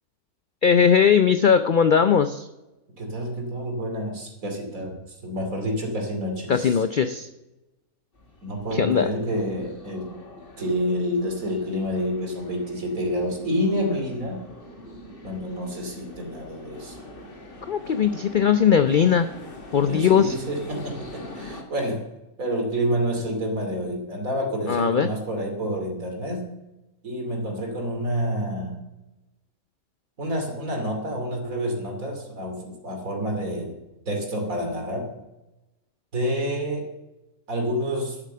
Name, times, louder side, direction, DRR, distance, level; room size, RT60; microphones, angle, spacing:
voice 1, 0.6-2.5 6.5-7.3 8.7-9.1 17.7-19.3 19.7-20.3 24.7-25.1, left 7 dB, 75° left, 10 dB, 0.4 m, -19 dB
voice 2, 3.0-7.1 8.4-10.1 10.6-14.4 15.2-17.0 19.8-22.1 22.4-26.5 27.0-28.8 30.2-33.8 34.1-35.1 36.1-36.9 37.5-38.2, equal, 65° right, 2 dB, 3.1 m, -28 dB
sound 1, 8.1-21.6, left 2 dB, 40° left, 2.0 m, -43 dB
11.0 x 8.4 x 6.8 m, 0.99 s
omnidirectional pair, 1.6 m